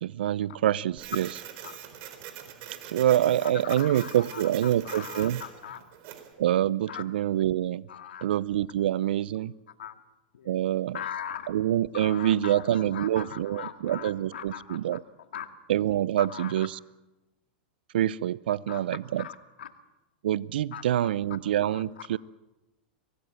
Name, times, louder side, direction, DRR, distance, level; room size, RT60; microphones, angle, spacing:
voice 1, 0.0-1.4 2.8-5.4 6.4-7.9 8.2-9.5 10.4-11.0 11.5-15.0 15.7-16.8 17.9-19.3 20.2-22.2, right 12 dB, 75° right, 21 dB, 0.7 m, -26 dB
Printer, 1.0-6.3, right 10 dB, 50° right, 4.1 m, -44 dB
voice 2, 3.6-5.8 6.9-7.0 7.9-8.3 9.8-10.0 10.3-10.5 10.9-11.5 11.9-14.8 15.3-15.5 16.2-16.7 18.7-18.8 19.2-19.7 20.7-20.8 21.7-21.8, left 9 dB, 85° left, 8 dB, 2.1 m, -40 dB
23.5 x 18.5 x 7.7 m, 1.0 s
hypercardioid pair, 115°, 5 cm